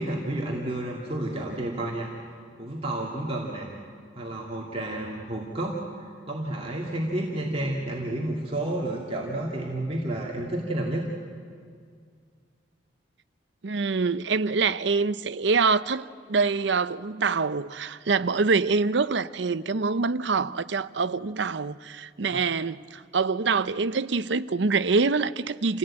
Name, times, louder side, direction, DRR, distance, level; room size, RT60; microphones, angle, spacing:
voice 1, 0.0-2.1 2.6-3.7 4.1-11.0, right 1 dB, 30° right, 2.6 m, -30 dB
voice 2, 13.6-25.8, right 4 dB, 70° right, 0.7 m, -25 dB
28.5 x 16.5 x 8.8 m
head